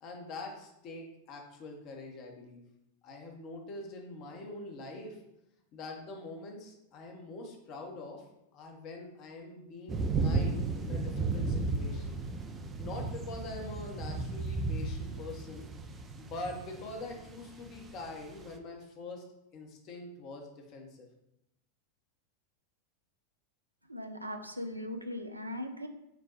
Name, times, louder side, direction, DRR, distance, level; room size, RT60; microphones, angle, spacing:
voice 1, 0.0-2.6 3.0-5.2 5.7-8.2 8.5-12.2 12.8-15.7 16.2-19.2 19.5-21.1, left 2 dB, 40° left, 2 dB, 0.8 m, -44 dB
sound 1, 9.9-18.5, right 3 dB, 20° right, 0.4 m, -34 dB
voice 2, 23.9-25.9, left 1 dB, 85° right, 6 dB, 0.4 m, -39 dB
5.9 x 2.2 x 2.9 m, 0.85 s
figure-of-eight pair, 90°, 0 cm